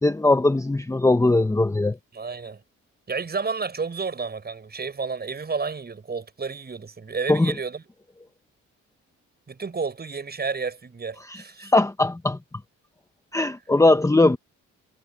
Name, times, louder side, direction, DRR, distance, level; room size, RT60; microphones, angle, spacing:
voice 1, 0.0-2.0 7.3-7.5 11.3-12.4 13.3-14.4, left 2 dB, 10° left, 1.0 m, -20 dB
voice 2, 2.1-2.6 3.1-7.8 9.5-11.7, right 5 dB, 30° right, 6.6 m, -31 dB
cardioid pair, 90°, 30 cm